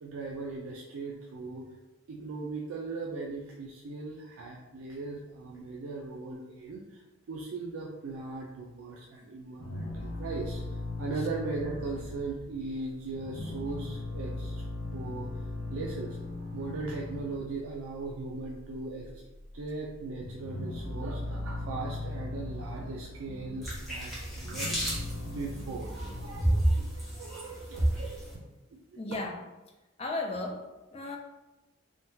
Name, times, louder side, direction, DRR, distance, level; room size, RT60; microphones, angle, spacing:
voice 1, 0.0-1.7 2.1-7.0 7.3-14.6 14.9-15.3 15.7-19.2 19.5-25.0 25.3-29.0, right 3 dB, 80° right, -3 dB, 0.4 m, -39 dB
sound 1, 9.6-12.8 13.1-17.7 18.0-19.1 19.3-19.5 19.9-23.9 24.3-26.6, left 2 dB, 85° left, 0.6 m, -38 dB
sound 2, 23.6-28.3, right 1 dB, ahead, 0.8 m, -31 dB
voice 2, 29.0-29.4 30.0-31.2, left 2 dB, 30° left, 3 dB, 0.3 m, -35 dB
3.6 x 2.2 x 2.7 m, 1.1 s
head